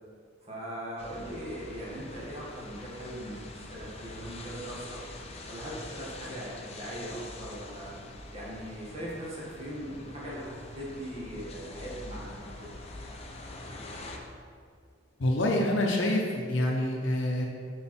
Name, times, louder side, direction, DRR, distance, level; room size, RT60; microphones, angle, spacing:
voice 1, 0.4-5.0 5.5-7.9 8.3-12.7, equal, 30° right, -6 dB, 1.8 m, -40 dB
sound 1, 1.0-14.2, left 2 dB, 30° left, 0.7 m, -45 dB
voice 2, 15.2-17.5, left 1 dB, 65° left, 0 dB, 0.7 m, -26 dB
7.3 x 4.7 x 4.4 m, 2.1 s
head